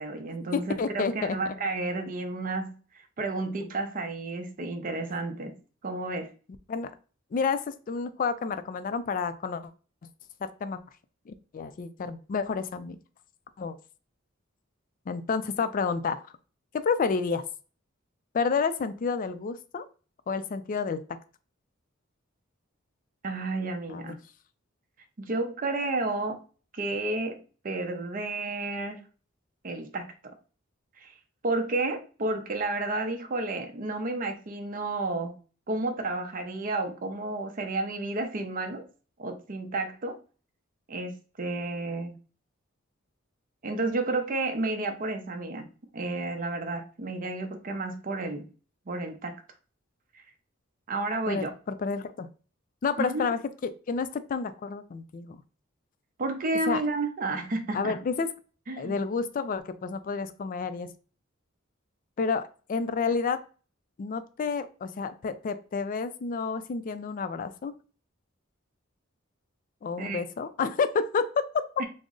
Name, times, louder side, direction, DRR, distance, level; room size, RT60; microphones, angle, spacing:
voice 1, 0.0-5.6 5.8-6.3 23.2-24.1 25.2-26.4 26.7-29.0 29.6-30.1 31.0-31.2 31.4-35.4 35.7-38.9 39.2-40.2 40.9-42.1 43.6-45.7 45.9-48.5 48.9-49.3 50.1-50.2 50.9-51.5 53.0-53.3 56.2-58.0 58.7-59.0 70.0-70.2 71.8-71.9, right 2 dB, 45° right, 0.6 m, -31 dB
voice 2, 0.5-1.4 6.7-6.9 7.3-9.7 10.4-10.8 11.3-13.0 13.6-13.8 15.1-16.2 16.7-17.4 18.3-19.8 20.3-21.0 23.9-24.1 51.3-52.3 52.8-55.4 56.7-56.8 57.7-58.3 58.8-60.9 62.2-63.4 64.0-67.7 69.8-71.3, left 5 dB, 40° left, 0.3 m, -30 dB
3.7 x 2.0 x 3.7 m
head